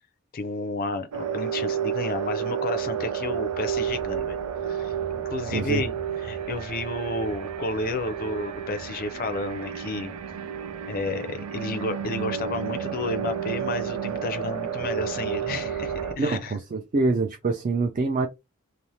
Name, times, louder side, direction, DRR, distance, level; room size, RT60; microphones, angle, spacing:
voice 1, 0.3-4.4 4.6-5.9 6.2-10.1 10.9-16.6, left 2 dB, 40° left, 0.4 m, -31 dB
sound 1, 1.1-16.1, right 8 dB, 90° right, 0.5 m, -31 dB
voice 2, 5.5-5.8 16.2-18.3, right 3 dB, 35° right, 0.4 m, -25 dB
3.2 x 2.0 x 2.6 m
head